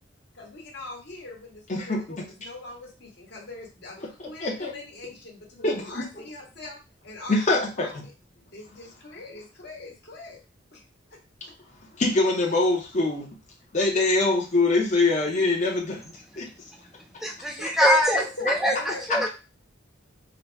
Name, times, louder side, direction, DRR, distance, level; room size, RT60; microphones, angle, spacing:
voice 1, 0.3-7.4 7.8-8.1 8.5-10.4 10.7-10.8 17.6-17.7 18.1-19.3, left 3 dB, 60° left, -2 dB, 1.4 m, -41 dB
voice 2, 1.7-2.2 4.0-4.7 5.6-6.3 7.3-8.0 12.0-13.3 13.7-16.0 16.4-16.5, left 2 dB, 40° left, -1 dB, 0.8 m, -24 dB
voice 3, 17.2-19.3, equal, ahead, 0 dB, 0.4 m, -23 dB
3.9 x 2.2 x 4.5 m, 0.31 s
head